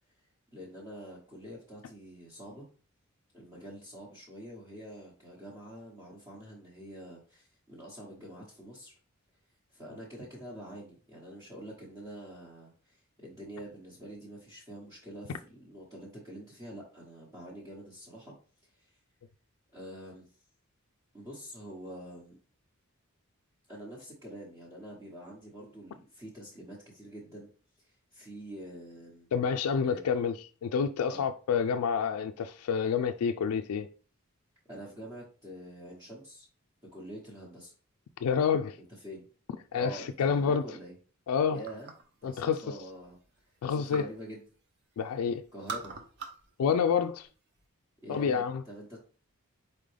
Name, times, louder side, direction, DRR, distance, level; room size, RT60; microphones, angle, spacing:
voice 1, 0.5-2.6 3.3-8.9 9.7-18.3 18.7-18.9 19.7-20.3 21.1-22.4 23.7-27.5 27.8-29.3 29.8-30.1 31.1-31.3 34.7-36.5 36.9-37.7 39.0-39.3 39.7-40.9 41.5-41.9 42.2-43.2 43.7-44.4 45.5-46.0 48.0-49.0, equal, 15° right, 1.0 m, -46 dB
voice 2, 29.3-30.3 30.6-33.9 38.2-38.8 39.7-40.6 41.3-41.6 42.2-42.6 43.6-44.1 45.0-45.4 46.6-47.3 48.1-48.6, left 6 dB, 85° left, 0.3 m, -28 dB
sound 1, 41.6-42.2 42.6-44.2 44.5-45.1 45.4-46.5 46.8-47.6, right 4 dB, 50° right, 0.7 m, -43 dB
4.3 x 3.7 x 3.3 m
head